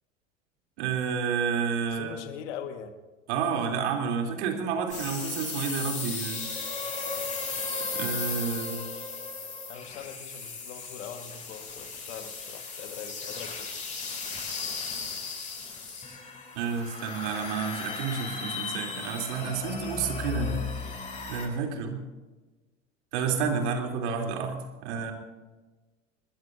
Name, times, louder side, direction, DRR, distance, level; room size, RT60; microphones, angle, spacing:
voice 1, 0.8-2.2 3.3-6.5 7.9-8.8 16.5-20.7 21.3-22.0 23.1-25.1, right 6 dB, 60° right, 2 dB, 3.3 m, -30 dB
voice 2, 1.9-2.9 9.7-13.7 19.6-20.0, left 8 dB, 65° left, 7 dB, 1.7 m, -42 dB
sound 1, 4.9-21.5, left 4 dB, 20° left, 7.2 m, -36 dB
25.5 x 21.0 x 2.7 m, 1.2 s
figure-of-eight pair, 80°, 38 cm